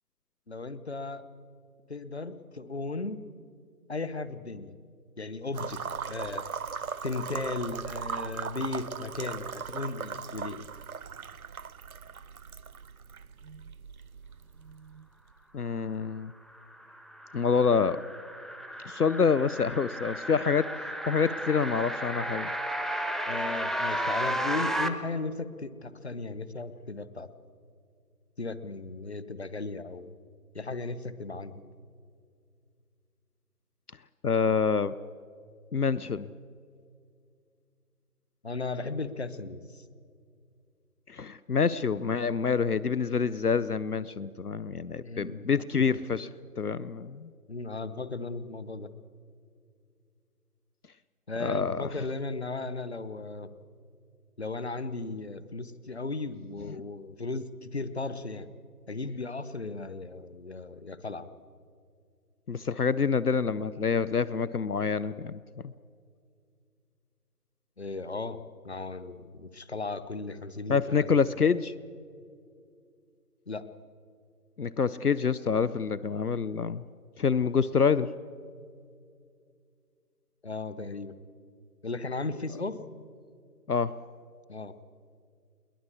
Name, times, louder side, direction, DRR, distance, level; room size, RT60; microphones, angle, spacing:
voice 1, 0.5-1.2 1.9-3.2 3.9-4.8 5.2-6.4 7.0-10.6 23.3-27.3 28.4-30.1 30.5-31.6 38.4-39.8 45.0-45.5 45.9-46.0 47.5-48.9 51.3-53.5 54.4-58.5 58.9-61.3 67.8-68.4 68.6-71.2 73.5-73.7 80.4-81.2 81.8-82.8 84.5-84.7, left 3 dB, 45° left, 14 dB, 0.9 m, -36 dB
sound 1, 5.5-15.3, right 6 dB, 65° right, 0.5 m, -39 dB
voice 2, 15.5-16.3 17.3-18.0 18.9-20.7 21.1-22.5 34.2-35.0 35.7-36.3 41.1-46.3 46.6-47.3 51.4-51.9 62.5-65.4 70.7-71.7 74.6-76.8 77.2-78.1 83.7-84.0, left 5 dB, 70° left, 17 dB, 0.7 m, -27 dB
sound 2, 16.5-24.9, right 1 dB, ahead, 0.5 m, -33 dB
21.5 x 19.5 x 8.4 m, 2.3 s
figure-of-eight pair, 160°, 47 cm